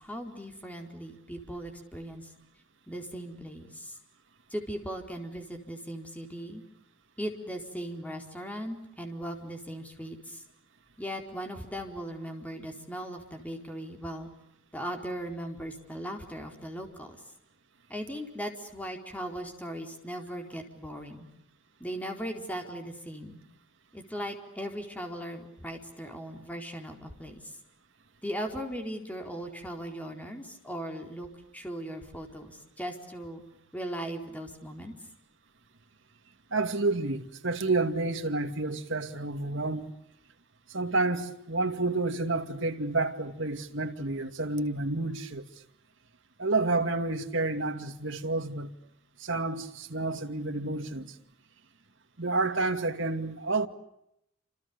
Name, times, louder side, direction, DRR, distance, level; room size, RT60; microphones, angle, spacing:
voice 1, 0.0-2.3 2.9-4.0 4.5-6.6 7.2-10.4 11.0-14.3 14.7-17.2 17.9-21.3 21.8-23.4 23.9-27.5 28.2-31.3 31.5-33.4 33.7-34.9, equal, 5° left, 4.3 m, -38 dB
voice 2, 36.5-39.9 40.7-45.5 46.4-48.7 49.2-51.2 52.2-53.7, right 3 dB, 60° right, 2.4 m, -29 dB
30.0 x 27.5 x 7.0 m
head